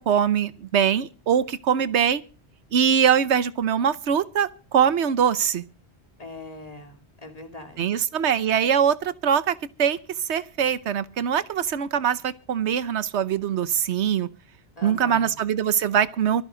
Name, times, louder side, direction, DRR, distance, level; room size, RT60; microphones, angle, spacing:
voice 1, 0.0-2.2 2.7-5.6 7.8-10.0 10.3-14.3 14.8-16.4, right 8 dB, 85° right, 1.1 m, -22 dB
voice 2, 6.2-8.0 14.8-15.4, left 2 dB, 35° left, 3.1 m, -41 dB
25.0 x 9.2 x 3.9 m
omnidirectional pair, 1.1 m